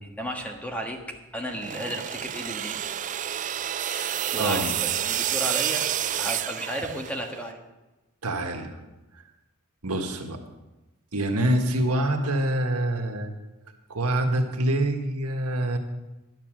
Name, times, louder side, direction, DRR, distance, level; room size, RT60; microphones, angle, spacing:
voice 1, 0.0-3.3 3.9-5.9 6.2-7.6 11.7-11.8, equal, 5° left, 2 dB, 1.4 m, -34 dB
sound 1, 1.5-7.4, right 11 dB, 35° right, 0.3 m, -29 dB
voice 2, 4.4-4.7 8.2-8.8 9.8-10.4 11.1-13.3 13.9-15.8, right 1 dB, 90° right, 4 dB, 1.6 m, -25 dB
11.5 x 9.6 x 6.3 m, 1.1 s
head